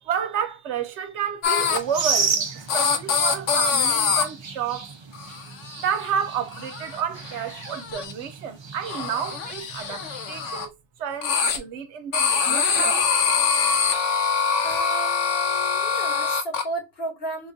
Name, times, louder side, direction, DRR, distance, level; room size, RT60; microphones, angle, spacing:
voice 1, 0.0-4.9 5.3-13.1, right 8 dB, 75° right, 1.0 m, -30 dB
sound 1, 1.4-1.8 2.7-4.2 5.1-5.4 5.7-6.1 6.5-7.0 7.3-8.1 8.9-10.7 11.2-11.6 12.1-16.6, left 6 dB, 80° left, 1.0 m, -24 dB
sound 2, 1.6-10.7, right 5 dB, 45° right, 0.3 m, -33 dB
voice 2, 14.6-17.5, right 2 dB, 60° left, 1.1 m, -33 dB
4.8 x 2.4 x 2.5 m
omnidirectional pair, 1.2 m